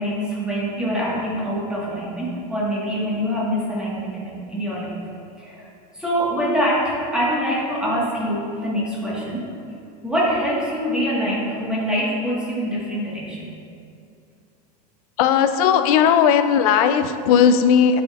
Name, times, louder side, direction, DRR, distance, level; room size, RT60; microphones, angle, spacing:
voice 1, 0.0-5.0 5.4-5.7 5.9-9.5 10.0-13.5, equal, 5° right, -7 dB, 1.6 m, -24 dB
voice 2, 15.2-18.0, left 8 dB, 65° left, 9 dB, 0.5 m, -16 dB
9.8 x 5.0 x 2.5 m, 2.4 s
supercardioid pair, 140°, 20 cm